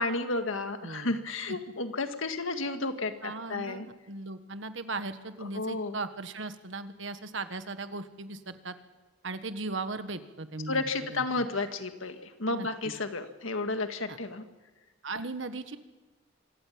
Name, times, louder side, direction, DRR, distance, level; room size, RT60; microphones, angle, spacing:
voice 1, 0.0-3.9 5.5-5.9 10.7-14.4, left 3 dB, 90° left, 7 dB, 1.9 m, -32 dB
voice 2, 0.8-1.1 3.2-8.7 9.2-11.4 12.5-12.9 14.1-14.2 15.0-15.8, right 3 dB, 70° right, 10 dB, 1.5 m, -38 dB
26.0 x 15.5 x 8.7 m, 1.2 s
head